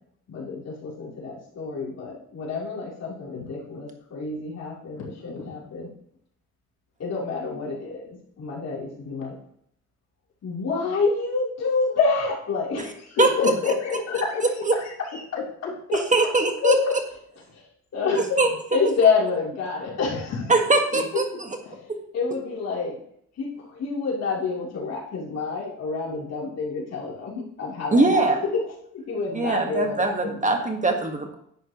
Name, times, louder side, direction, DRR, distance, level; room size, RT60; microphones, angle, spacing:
voice 1, 0.3-5.9 7.0-9.3 10.4-13.2 14.2-14.3 14.7-14.8 15.1-15.2 17.9-18.2 18.7-20.3 21.7-21.8 22.1-23.0 23.4-28.7 28.9-30.7, left 4 dB, 55° left, -5 dB, 3.6 m, -28 dB
voice 2, 13.2-14.4 15.4-16.0 16.6-17.0 18.1-18.4 19.8-20.2 20.9-21.5, left 5 dB, 90° left, -4 dB, 3.0 m, -26 dB
voice 3, 15.9-16.7 18.4-18.8 20.5-21.2 27.9-28.4 29.3-31.3, right 3 dB, 25° right, 4 dB, 1.6 m, -21 dB
10.5 x 7.9 x 3.1 m, 0.69 s
cardioid pair, 90°, 30 cm